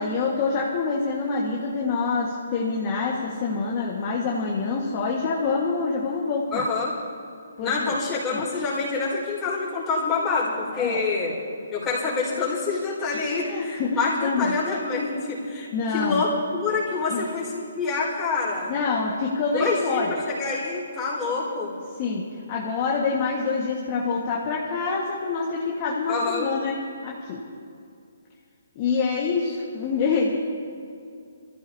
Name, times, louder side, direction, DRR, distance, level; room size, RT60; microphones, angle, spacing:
voice 1, 0.0-6.6 7.6-8.0 8.3-8.4 10.7-11.0 13.3-14.5 15.7-16.2 17.1-17.2 18.7-20.2 22.0-22.2 22.5-26.8 27.0-27.4 28.7-30.3, left 4 dB, 30° left, -3 dB, 1.5 m, -26 dB
voice 2, 6.5-6.9 7.6-11.3 11.7-18.7 19.5-21.7 26.1-26.5, left 4 dB, 15° left, -6 dB, 4.6 m, -26 dB
26.5 x 15.0 x 2.8 m, 2.4 s
hypercardioid pair, 160°, 0 cm